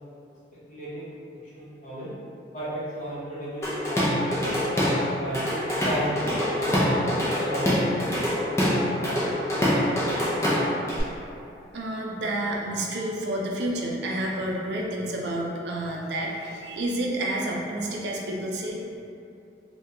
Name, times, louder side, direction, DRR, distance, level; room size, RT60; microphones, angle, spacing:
voice 1, 0.7-1.1 1.5-2.1 2.5-5.5 5.8-9.3, equal, 40° left, -9 dB, 0.9 m, -35 dB
Drum kit / Drum, 3.6-5.0 5.3-11.0, equal, 15° left, 0.5 m, -25 dB
voice 2, 11.7-18.8, right 1 dB, 70° right, -2 dB, 0.4 m, -29 dB
3.4 x 2.2 x 2.8 m, 2.7 s
head